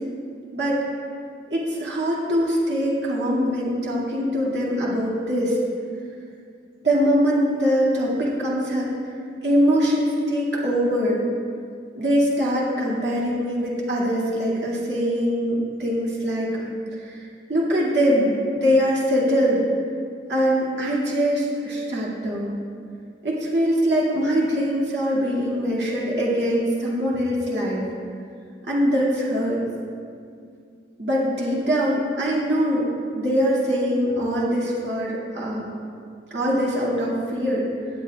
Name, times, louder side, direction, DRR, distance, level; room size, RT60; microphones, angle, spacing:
voice 1, 0.5-0.8 1.5-5.6 6.8-8.9 9.4-11.2 11.9-19.6 20.3-22.6 23.2-27.8 28.7-29.6 31.0-32.9 33.1-35.7 36.3-37.7, equal, 80° right, -6 dB, 2.2 m, -23 dB
18.0 x 8.2 x 2.4 m, 2.3 s
head